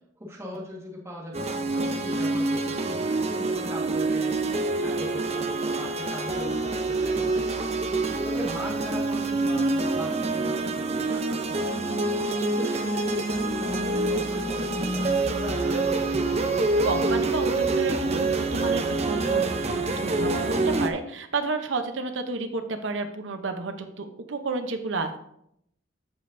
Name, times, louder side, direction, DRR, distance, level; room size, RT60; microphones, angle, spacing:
voice 1, 0.2-7.7 8.0-11.9 12.6-16.4, equal, 15° right, -3 dB, 1.6 m, -39 dB
sound 1, 1.3-20.9, right 3 dB, 35° right, 0.7 m, -26 dB
voice 2, 16.8-25.2, right 3 dB, 85° right, 7 dB, 0.8 m, -31 dB
14.5 x 5.4 x 2.7 m, 0.74 s
head